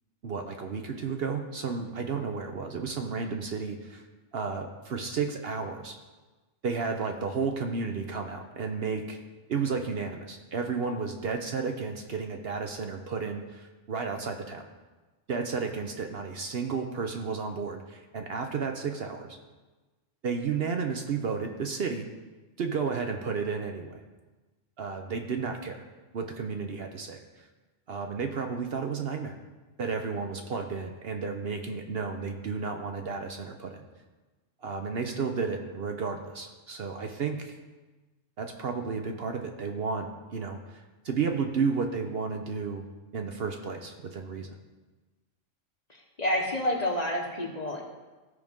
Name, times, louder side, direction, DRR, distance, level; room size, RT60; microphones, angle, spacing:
voice 1, 0.2-4.0 4.3-6.0 6.6-9.2 9.5-14.6 15.3-19.4 20.2-22.1 22.6-24.0 24.8-25.8 26.1-27.2 27.9-29.4 29.8-33.8 34.6-37.6 38.4-42.8 43.1-44.6, right 5 dB, 55° right, 4 dB, 0.8 m, -32 dB
voice 2, 46.2-47.8, left 1 dB, 35° left, 1 dB, 1.0 m, -28 dB
14.5 x 5.2 x 3.6 m, 1.2 s
omnidirectional pair, 1.3 m